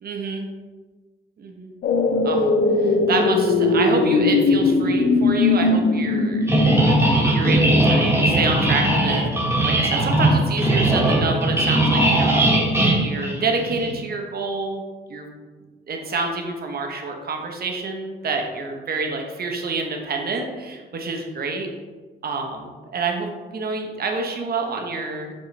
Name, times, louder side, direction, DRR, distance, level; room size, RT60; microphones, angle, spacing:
voice 1, 0.0-0.5 1.4-1.7 2.2-2.5 2.8-6.4 7.1-9.3 9.6-12.7 13.0-14.8 15.1-15.3 15.9-21.7 22.2-25.3, right 3 dB, 50° right, 2 dB, 1.1 m, -27 dB
sound 1, 1.8-7.9 8.3-8.4, left 3 dB, 55° left, 0.6 m, -20 dB
sound 2, 6.5-13.9, right 1 dB, 15° right, 1.8 m, -19 dB
7.4 x 3.9 x 3.2 m, 1.3 s
cardioid pair, 90°, 20 cm